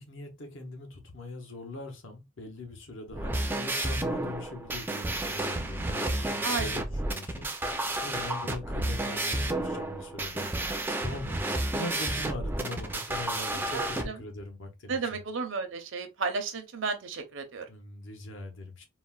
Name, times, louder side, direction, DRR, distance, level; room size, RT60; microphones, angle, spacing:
voice 1, 0.0-15.2 17.7-18.9, left 2 dB, 70° left, 0.9 m, -41 dB
sound 1, 3.1-14.0, right 1 dB, 10° right, 0.4 m, -31 dB
voice 2, 6.4-6.8 13.5-14.2 14.9-17.7, right 4 dB, 65° right, 0.7 m, -33 dB
4.0 x 2.1 x 2.3 m
head